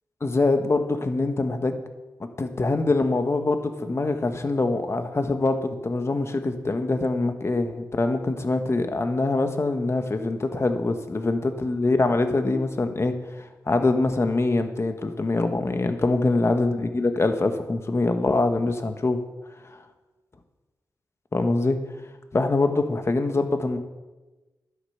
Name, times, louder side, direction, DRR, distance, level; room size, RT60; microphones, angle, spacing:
voice 1, 0.2-1.8 2.2-13.1 13.7-19.2 21.3-21.8 22.3-23.8, left 2 dB, 40° left, 7 dB, 1.3 m, -24 dB
11.5 x 9.7 x 5.8 m, 1.2 s
cardioid pair, 75°, 7 cm